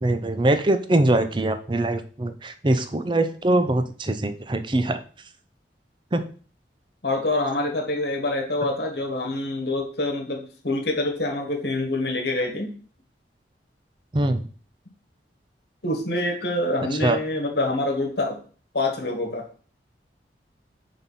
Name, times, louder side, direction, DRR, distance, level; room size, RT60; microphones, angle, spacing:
voice 1, 0.0-5.0 6.1-6.2 14.1-14.5 17.0-17.2, right 1 dB, 25° right, 10 dB, 0.6 m, -22 dB
voice 2, 7.0-12.7 15.8-18.4 18.7-19.4, left 2 dB, 65° left, 2 dB, 1.5 m, -26 dB
6.0 x 3.6 x 5.6 m, 0.42 s
head